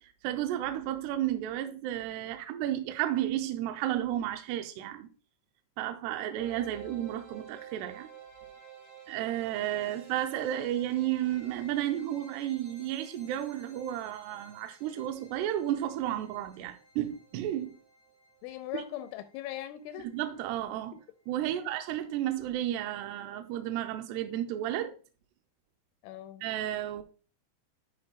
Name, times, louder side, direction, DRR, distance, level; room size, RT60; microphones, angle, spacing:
voice 1, 0.0-5.1 5.8-8.1 9.1-17.8 18.7-18.8 20.1-21.0 21.3-24.9 26.4-27.0, right 12 dB, 85° right, 2.4 m, -32 dB
sound 1, 6.4-21.4, right 7 dB, 70° right, 5.2 m, -53 dB
voice 2, 18.4-20.1 21.4-21.7 26.0-26.4, left 13 dB, 85° left, 3.0 m, -40 dB
10.5 x 5.7 x 2.2 m
omnidirectional pair, 5.4 m